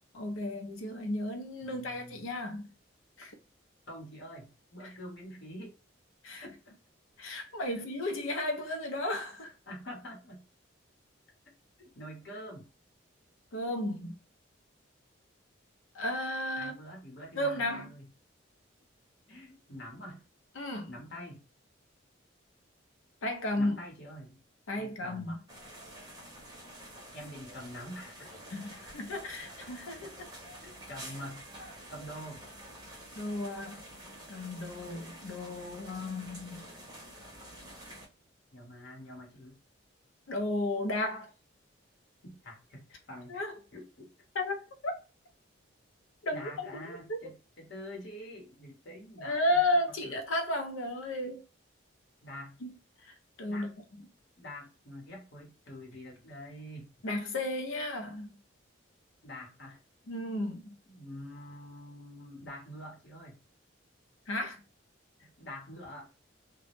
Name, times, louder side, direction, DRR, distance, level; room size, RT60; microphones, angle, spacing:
voice 1, 0.1-2.7 3.2-3.3 4.8-4.9 6.2-6.5 7.2-9.5 13.5-14.1 15.9-16.7 17.4-17.9 20.6-20.9 23.2-23.8 24.7-25.4 28.5-30.3 33.1-33.8 34.3-36.7 40.3-41.3 43.3-43.6 44.3-44.6 44.8-44.9 46.2-47.2 49.2-51.4 52.6-52.7 53.0-53.7 57.0-58.4 60.1-60.8 64.3-64.6, left 1 dB, 80° left, 0.6 m, -33 dB
voice 2, 1.6-2.3 3.9-5.7 6.4-6.7 9.7-10.4 11.8-12.6 16.6-18.1 19.3-20.2 20.9-21.4 23.6-24.4 24.8-25.4 27.1-28.3 30.6-31.5 31.9-32.4 38.5-39.6 42.2-43.4 43.7-44.1 46.3-49.6 50.0-50.2 52.2-52.6 53.5-53.7 54.4-56.9 59.2-59.8 60.9-63.4 65.2-66.1, equal, 60° left, 0.9 m, -46 dB
sound 1, 25.5-38.1, right 1 dB, 20° right, 0.7 m, -48 dB
2.2 x 2.0 x 2.9 m
head